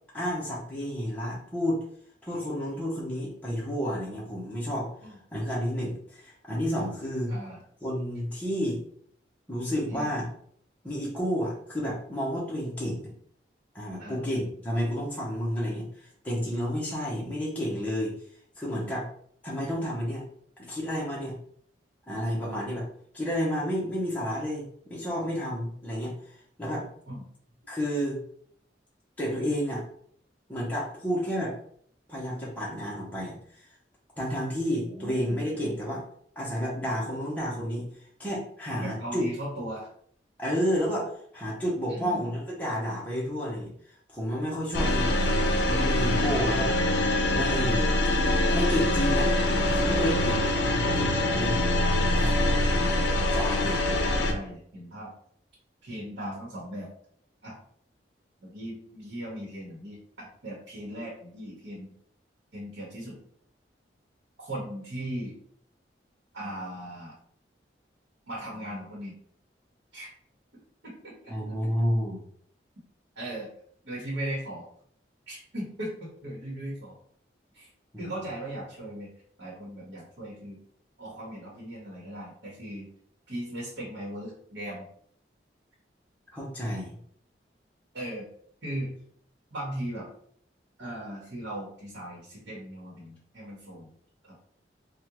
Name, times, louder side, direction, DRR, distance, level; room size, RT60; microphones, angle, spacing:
voice 1, 0.1-1.8 2.2-4.9 5.3-7.3 7.8-8.8 9.5-10.3 10.8-13.1 13.7-18.2 18.6-19.1 19.4-20.2 20.7-21.4 22.1-22.9 23.1-24.6 24.9-26.1 26.6-26.9 27.7-28.2 29.2-29.8 30.5-31.6 32.1-33.3 34.2-36.0 36.4-37.9 38.2-39.2 40.4-43.7 44.1-45.4 45.7-46.7 47.3-47.9 48.5-49.3 49.7-51.7 52.1-52.4 52.7-53.8 71.3-72.2 77.9-78.2 86.3-87.0, equal, 10° left, -6 dB, 0.8 m, -30 dB
voice 2, 7.3-7.6 9.9-10.1 14.0-14.2 27.1-27.2 34.7-35.4 38.8-39.9 41.9-42.3 50.2-50.5 51.9-52.2 53.6-55.1 55.8-56.9 57.4-57.5 58.4-61.9 62.5-63.2 64.4-65.4 66.3-67.1 68.3-69.2 69.9-70.1 70.8-71.3 73.1-73.5 73.8-74.7 75.3-77.0 77.5-77.7 78.0-79.1 79.4-80.6 81.0-82.9 83.3-84.9 87.9-88.3 88.6-88.9 89.5-90.1 90.8-93.9 94.2-94.4, right 1 dB, 75° right, -5 dB, 1.0 m, -38 dB
sound 1, 44.7-54.3, left 1 dB, 70° left, 0.5 m, -24 dB
3.5 x 2.2 x 2.9 m, 0.62 s
head